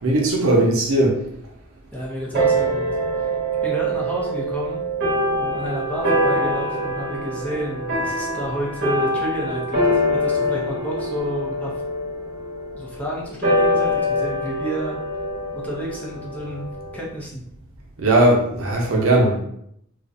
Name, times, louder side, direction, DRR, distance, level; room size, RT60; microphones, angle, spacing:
voice 1, 0.0-1.2 18.0-19.4, right 1 dB, 80° right, -1 dB, 0.6 m, -18 dB
voice 2, 1.9-2.9 3.2-3.3 3.6-4.8 5.3-11.7 12.7-15.0 15.5-16.7 16.9-17.4, right 1 dB, 5° left, -4 dB, 0.4 m, -30 dB
sound 1, 2.3-17.1, equal, 55° right, 0.8 m, -24 dB
2.4 x 2.0 x 2.6 m, 0.74 s
head